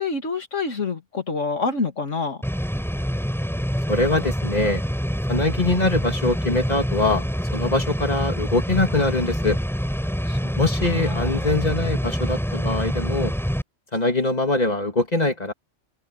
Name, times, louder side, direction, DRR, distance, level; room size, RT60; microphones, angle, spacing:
voice 1, 0.0-2.4 10.3-10.5 10.9-11.5, left 4 dB, 70° left, 2.8 m, -27 dB
sound 1, 2.4-13.6, equal, ahead, 5.6 m, -26 dB
voice 2, 3.9-4.8 5.3-7.2 7.5-9.6 10.6-13.3 13.9-15.5, left 2 dB, 30° left, 2.8 m, -23 dB
open air
omnidirectional pair, 1.3 m